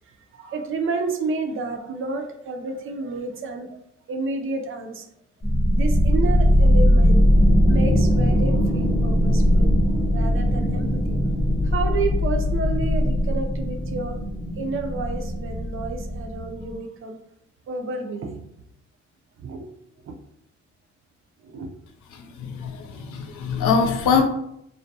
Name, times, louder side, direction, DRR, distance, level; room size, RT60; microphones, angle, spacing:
voice 1, 0.1-5.1 5.7-7.2 7.7-9.7 10.1-11.2 11.6-14.2 14.6-17.2 17.7-18.5 19.4-19.7 20.0-20.2 21.4-21.7, right 3 dB, 45° right, 4 dB, 0.4 m, -30 dB
sound 1, 5.4-16.7, equal, 20° left, 0.9 m, -20 dB
voice 2, 22.1-24.2, left 5 dB, 80° left, 4 dB, 0.5 m, -23 dB
2.3 x 2.1 x 2.6 m, 0.77 s
cardioid pair, 90°, 30 cm